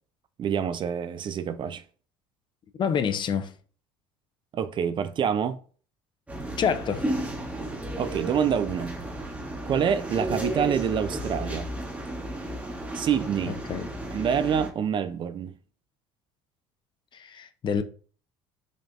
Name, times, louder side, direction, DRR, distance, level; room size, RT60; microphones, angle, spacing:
voice 1, 0.4-1.8 4.5-5.6 8.0-9.0 9.6-11.7 12.9-13.6 14.1-15.5, right 8 dB, 40° right, 0.4 m, -26 dB
voice 2, 2.8-3.5 6.6-7.1 13.5-13.9 17.1-17.8, left 7 dB, 40° left, 0.4 m, -27 dB
sound 1, 6.3-14.7, right 1 dB, 10° right, 0.9 m, -33 dB
5.1 x 2.6 x 2.4 m
supercardioid pair, 80°, 13 cm